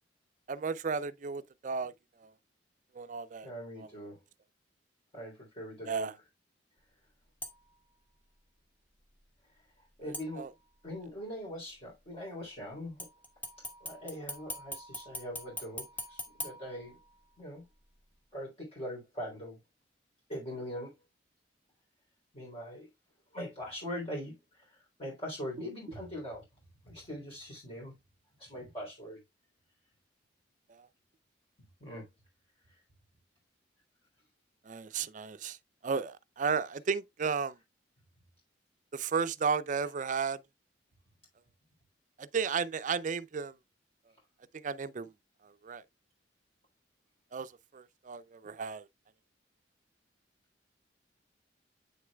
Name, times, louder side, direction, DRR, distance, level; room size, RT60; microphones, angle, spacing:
voice 1, 0.5-1.9 2.2-2.3 2.9-3.5 3.8-3.9 5.8-6.1 10.0-10.5 30.8-30.9 34.7-35.6 35.8-37.6 38.9-40.4 42.2-43.5 44.5-45.1 45.6-45.8 47.3-48.9, right 5 dB, 45° right, 0.4 m, -34 dB
voice 2, 3.4-4.2 5.1-6.1 10.0-10.5 10.8-13.0 13.8-17.0 17.4-17.7 18.3-19.6 20.3-20.9 22.3-22.9 23.3-26.4 26.8-28.0 28.4-29.2 31.6-32.1, equal, 30° left, 3.3 m, -42 dB
sound 1, 7.4-7.8 10.1-10.8 13.0-17.4 17.8-17.9, left 1 dB, 10° left, 1.5 m, -43 dB
8.5 x 6.4 x 2.3 m
head